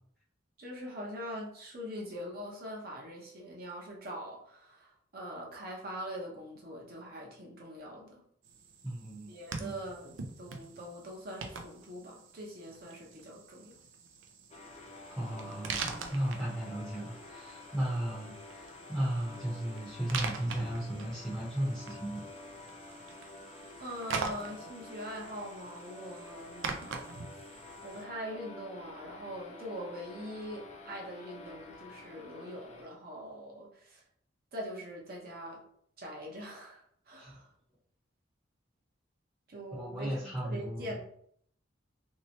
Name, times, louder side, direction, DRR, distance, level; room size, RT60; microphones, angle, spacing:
voice 1, 0.6-8.2 9.3-13.8 23.4-26.9 27.8-34.0 34.5-35.6 36.0-37.5 39.5-41.0, equal, 50° right, -2 dB, 0.8 m, -43 dB
sound 1, 8.4-28.0, right 5 dB, 75° right, 0.4 m, -44 dB
voice 2, 8.8-9.3 9.6-9.7 15.1-22.2 37.1-37.4 39.7-41.0, right 1 dB, ahead, -8 dB, 0.7 m, -35 dB
sound 2, 14.5-32.9, left 3 dB, 35° left, 0.4 m, -49 dB
3.1 x 2.8 x 2.8 m, 0.66 s
head